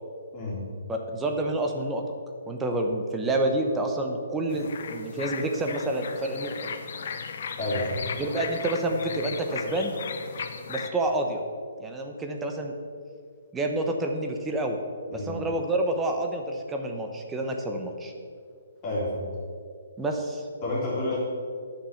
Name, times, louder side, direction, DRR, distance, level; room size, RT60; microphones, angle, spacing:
voice 1, 0.3-0.7 7.6-8.0 15.1-15.4 18.8-19.3 20.6-21.2, left 1 dB, 25° left, -6 dB, 2.9 m, -29 dB
voice 2, 0.9-2.0 2.5-6.5 8.2-10.0 10.7-11.4 11.8-12.7 13.5-14.8 15.1-18.1 20.0-20.5, right 2 dB, 10° right, 3 dB, 0.9 m, -28 dB
sound 1, 4.5-10.9, left 6 dB, 55° left, 0.9 m, -36 dB
10.0 x 5.9 x 6.5 m, 2.2 s
hypercardioid pair, 155°, 0 cm